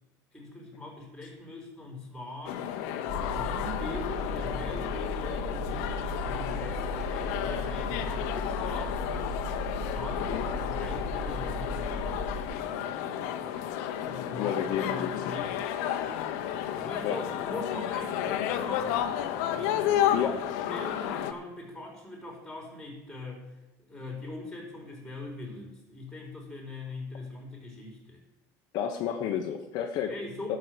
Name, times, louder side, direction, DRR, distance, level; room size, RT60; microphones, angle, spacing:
voice 1, 0.3-2.7 3.3-9.1 9.9-12.2 14.0-15.6 16.8-19.3 19.6-20.3 20.6-28.2 30.1-30.6, left 2 dB, 5° left, 0 dB, 4.1 m, -42 dB
sound 1, 2.4-21.3, left 10 dB, 80° left, 1.0 m, -32 dB
sound 2, 3.1-12.4, equal, 10° right, 2.9 m, -36 dB
voice 2, 14.3-15.1 17.0-17.2 20.1-20.5 28.7-30.1 30.5-30.6, left 9 dB, 55° left, 4 dB, 1.1 m, -31 dB
12.5 x 6.4 x 7.9 m, 0.98 s
cardioid pair, 135°, 8 cm